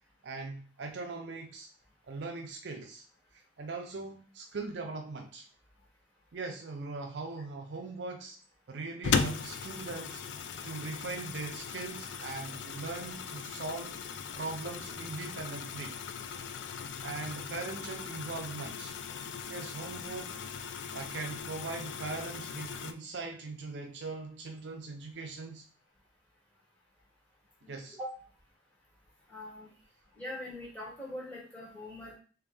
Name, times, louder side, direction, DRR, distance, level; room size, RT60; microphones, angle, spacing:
voice 1, 0.2-1.7 2.1-3.0 3.3-5.5 6.3-8.4 8.7-10.2 10.6-14.0 14.4-16.0 17.0-19.0 19.5-20.6 20.9-25.6 27.7-28.0, right 3 dB, 70° right, 3 dB, 0.5 m, -40 dB
sound 1, 9.0-22.9, left 6 dB, 80° left, 0.4 m, -38 dB
voice 2, 27.6-28.1 29.3-29.7 30.1-32.2, left 1 dB, 10° left, -6 dB, 1.5 m, -42 dB
3.4 x 3.0 x 3.4 m, 0.39 s
head